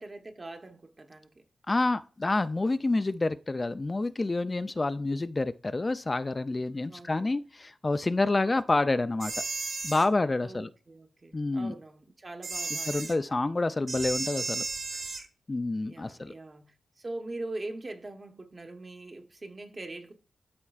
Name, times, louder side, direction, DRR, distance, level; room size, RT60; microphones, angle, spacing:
voice 1, 0.0-1.4 6.9-7.3 10.4-13.1 15.8-20.1, right 2 dB, 35° right, 1.0 m, -42 dB
voice 2, 1.7-9.3 9.8-10.7 11.3-11.7 12.9-14.6 15.5-16.3, left 2 dB, 30° left, 0.3 m, -28 dB
sound 1, 9.2-10.1 12.4-13.1 13.9-15.2, right 3 dB, 65° right, 1.3 m, -34 dB
13.0 x 4.3 x 2.4 m
wide cardioid pair, 100°, 0 cm